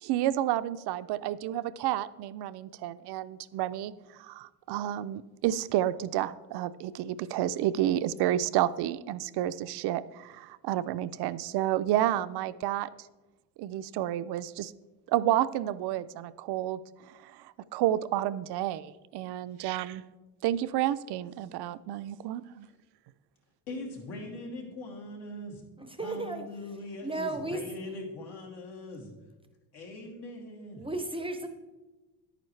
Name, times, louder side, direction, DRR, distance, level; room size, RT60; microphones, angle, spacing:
voice 1, 0.0-3.9 4.2-12.9 13.6-14.7 15.1-16.8 17.1-20.0 20.4-22.7, right 13 dB, 75° right, 14 dB, 0.5 m, -30 dB
voice 2, 23.7-25.6 26.0-29.1 29.7-30.9, left 2 dB, 75° left, -1 dB, 2.7 m, -41 dB
voice 3, 25.8-26.4 27.0-27.6 29.0-29.1 30.0-30.1 30.7-31.5, right 2 dB, 15° right, 6 dB, 0.5 m, -34 dB
10.5 x 9.1 x 3.2 m, 1.2 s
cardioid pair, 150°, 40 cm